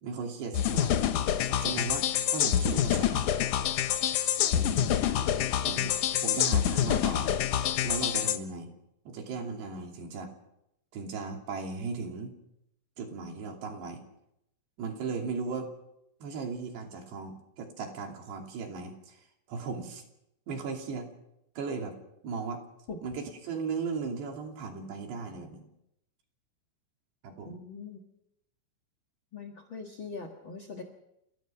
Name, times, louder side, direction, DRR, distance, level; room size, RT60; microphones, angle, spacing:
voice 1, 0.0-1.0 1.5-3.2 4.6-5.0 5.6-7.3 7.8-8.7 9.1-10.3 10.9-12.3 13.0-14.0 14.8-15.7 16.2-19.2 19.5-20.0 20.5-21.1 21.6-22.0 22.2-22.6 23.0-25.7 27.2-27.6, right 4 dB, 75° right, 2 dB, 5.0 m, -37 dB
sound 1, 0.5-8.4, left 10 dB, 75° left, 1.9 m, -27 dB
voice 2, 27.4-28.0 29.3-30.8, left 4 dB, 55° left, 2 dB, 1.4 m, -41 dB
29.0 x 16.5 x 5.9 m, 0.82 s
omnidirectional pair, 5.0 m